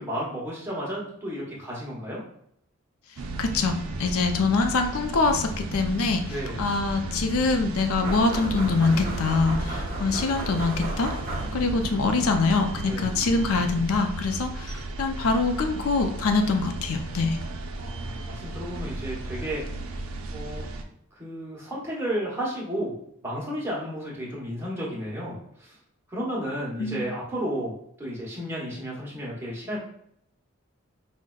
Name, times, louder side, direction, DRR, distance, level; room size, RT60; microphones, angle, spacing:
voice 1, 0.0-2.2 6.3-6.6 12.9-13.1 17.8-19.6 20.3-20.6 21.2-22.9 23.2-25.8 26.1-29.8, equal, 10° right, -6 dB, 0.9 m, -32 dB
sound 1, 3.2-20.8, right 2 dB, 85° right, 0.4 m, -34 dB
voice 2, 3.4-11.1 11.5-17.4 26.8-27.1, left 3 dB, 85° left, 6 dB, 0.4 m, -24 dB
sound 2, 8.0-11.9, right 1 dB, 40° right, 0.7 m, -35 dB
4.9 x 2.1 x 2.2 m, 0.70 s
head